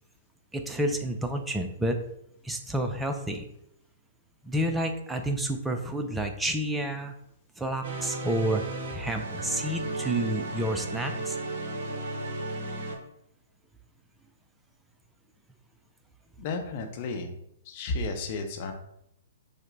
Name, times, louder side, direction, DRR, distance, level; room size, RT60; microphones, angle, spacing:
voice 1, 0.5-2.0 2.4-3.5 4.4-7.1 7.6-8.6 8.9-11.4, right 1 dB, 5° right, 5 dB, 0.5 m, -29 dB
sound 1, 7.8-13.0, right 2 dB, 55° right, 0.8 m, -34 dB
voice 2, 16.4-17.3 17.7-18.7, left 3 dB, 40° left, 4 dB, 0.7 m, -32 dB
5.0 x 2.1 x 3.9 m, 0.77 s
figure-of-eight pair, 115°, 0 cm